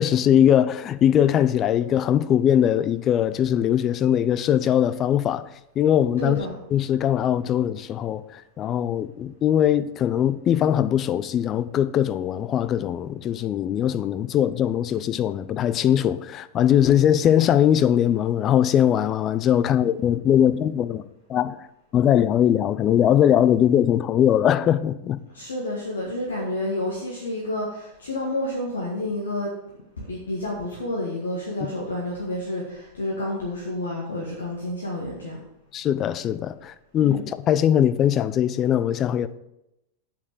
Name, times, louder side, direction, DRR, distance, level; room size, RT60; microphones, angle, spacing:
voice 1, 0.0-5.4 5.8-6.4 6.7-21.0 21.3-21.6 21.9-25.2 31.6-31.7 35.7-39.3, left 10 dB, 30° left, 0.5 m, -21 dB
voice 2, 6.2-6.5 25.3-29.5 30.0-35.4 37.0-37.2, left 1 dB, 70° left, 1.7 m, -29 dB
8.3 x 6.5 x 4.9 m
figure-of-eight pair, 90°, 0 cm